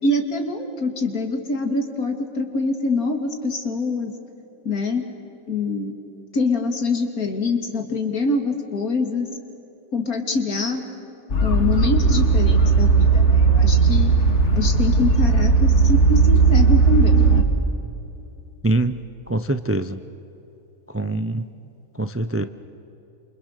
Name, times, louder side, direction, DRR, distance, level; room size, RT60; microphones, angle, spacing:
voice 1, 0.0-4.1 4.6-5.0 5.5-5.9 6.3-9.3 9.9-10.8 11.4-14.1 14.5-17.4, left 3 dB, 80° left, 4 dB, 2.9 m, -24 dB
sound 1, 11.3-17.4, right 4 dB, 50° left, 2.2 m, -16 dB
voice 2, 18.6-19.0 19.3-20.0 20.9-21.4 22.0-22.4, right 2 dB, 15° right, 11 dB, 0.4 m, -23 dB
28.0 x 28.0 x 6.6 m, 2.9 s
omnidirectional pair, 1.5 m